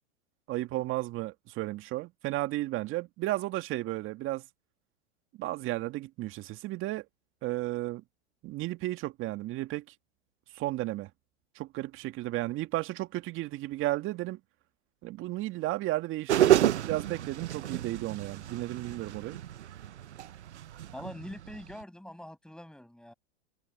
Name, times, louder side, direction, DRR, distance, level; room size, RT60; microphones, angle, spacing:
voice 1, 0.5-4.4 5.4-7.1 7.4-8.0 8.4-9.8 10.5-11.1 11.6-14.4 15.0-19.4, right 17 dB, 40° right, 2.1 m, -33 dB
sound 1, 16.3-21.8, right 12 dB, 85° right, 0.8 m, -29 dB
voice 2, 20.9-23.1, left 1 dB, ahead, 7.1 m, -44 dB
hypercardioid pair, 115°, 33 cm